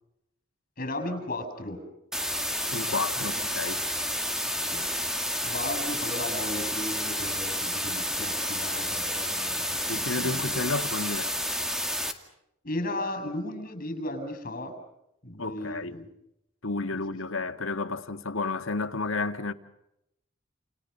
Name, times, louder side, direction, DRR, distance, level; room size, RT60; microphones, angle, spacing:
voice 1, 0.8-1.8 3.2-3.3 4.7-4.9 5.4-10.6 12.6-14.8 15.2-16.1 16.9-17.0, left 1 dB, 45° left, 7.4 m, -35 dB
sound 1, 2.1-12.1, equal, 5° right, 2.2 m, -30 dB
voice 2, 2.7-3.8 9.9-11.4 15.4-16.0 16.6-19.5, left 3 dB, 85° left, 1.8 m, -31 dB
30.0 x 29.5 x 5.5 m
head